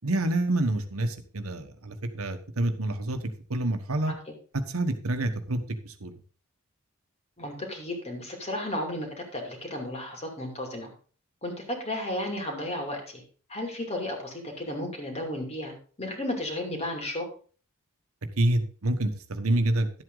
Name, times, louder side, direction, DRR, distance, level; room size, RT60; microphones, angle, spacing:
voice 1, 0.0-3.2 3.5-4.1 4.5-6.1 18.4-20.0, right 1 dB, 85° right, 7 dB, 1.3 m, -27 dB
voice 2, 7.4-9.1 9.3-10.9 11.4-13.2 13.5-15.7 16.0-17.3, left 1 dB, 30° left, 2 dB, 2.7 m, -33 dB
11.5 x 8.0 x 4.0 m, 0.41 s
head